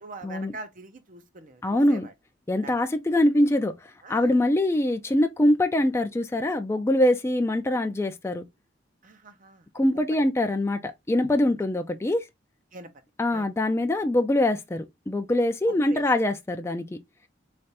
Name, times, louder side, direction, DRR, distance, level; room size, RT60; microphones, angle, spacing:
voice 1, 0.0-2.1 2.6-2.8 4.0-4.3 9.0-9.7 9.9-10.0 12.7-12.9 13.3-13.5 15.7-16.0, right 2 dB, 45° right, 0.6 m, -43 dB
voice 2, 1.6-2.1 2.5-8.4 9.7-12.3 13.2-17.0, left 1 dB, 15° left, 0.3 m, -24 dB
3.3 x 2.4 x 4.1 m
head